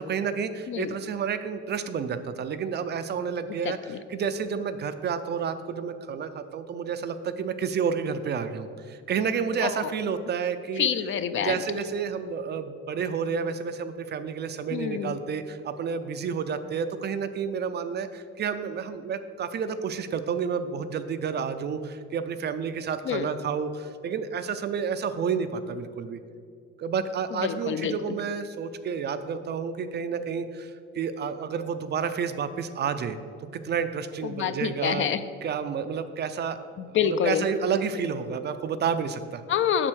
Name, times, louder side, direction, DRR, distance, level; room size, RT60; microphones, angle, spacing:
voice 1, 0.0-10.9 11.4-26.2 26.8-33.2 33.5-35.1 35.4-36.6 36.9-39.4, right 6 dB, 35° right, 10 dB, 0.4 m, -30 dB
voice 2, 3.6-4.0 9.6-9.9 10.8-11.6 14.7-15.2 23.0-23.3 27.3-28.2 34.2-35.2 36.8-37.4 39.5-39.9, left 8 dB, 45° left, 11 dB, 0.4 m, -27 dB
7.6 x 6.6 x 6.2 m, 2.3 s
cardioid pair, 150°, 29 cm